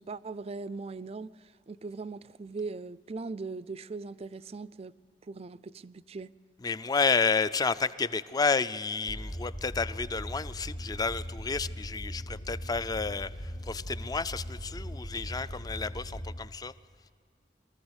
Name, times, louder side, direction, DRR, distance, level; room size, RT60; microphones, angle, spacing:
voice 1, 0.0-4.9 5.3-6.3, right 3 dB, 35° right, 0.4 m, -40 dB
voice 2, 6.6-16.7, left 4 dB, 20° left, 0.4 m, -31 dB
sound 1, 9.1-16.4, equal, 85° left, 3.2 m, -39 dB
23.0 x 14.5 x 8.1 m
head